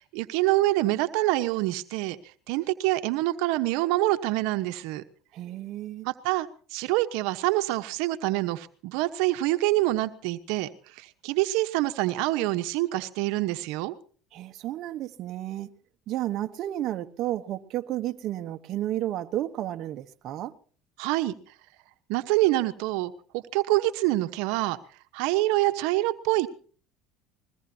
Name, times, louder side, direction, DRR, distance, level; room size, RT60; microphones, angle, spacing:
voice 1, 0.0-2.2 2.5-5.0 6.0-10.7 11.0-13.9 21.0-21.3 22.1-24.8 25.1-26.5, right 17 dB, 80° right, 1.1 m, -26 dB
voice 2, 5.3-6.1 14.3-15.7 16.1-20.5, right 13 dB, 55° right, 1.1 m, -32 dB
21.5 x 21.0 x 2.8 m
supercardioid pair, 110°, 0 cm